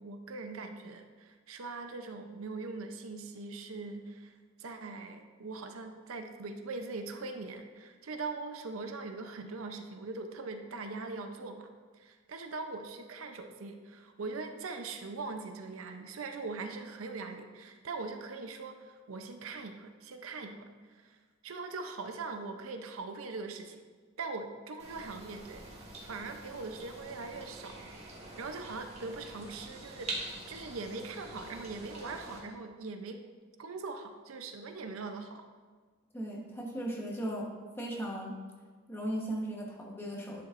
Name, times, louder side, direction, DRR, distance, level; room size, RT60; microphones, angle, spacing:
voice 1, 0.0-11.7 12.0-23.8 24.2-27.8 28.4-33.2 33.6-35.5, right 3 dB, 80° right, 6 dB, 0.6 m, -41 dB
sound 1, 24.8-32.4, right 2 dB, 30° right, 1.6 m, -45 dB
voice 2, 36.1-38.4 38.9-40.4, right 1 dB, 10° left, -2 dB, 1.1 m, -37 dB
10.5 x 6.9 x 2.5 m, 1.5 s
head